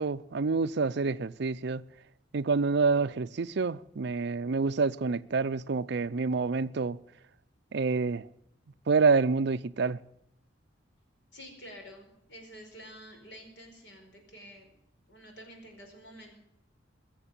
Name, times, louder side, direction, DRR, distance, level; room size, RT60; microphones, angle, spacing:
voice 1, 0.0-1.8 2.3-7.0 7.7-8.3 8.9-10.0, right 4 dB, 60° right, 0.5 m, -27 dB
voice 2, 11.3-14.7 15.1-16.3, equal, 60° left, 4.6 m, -49 dB
21.5 x 7.4 x 7.3 m
head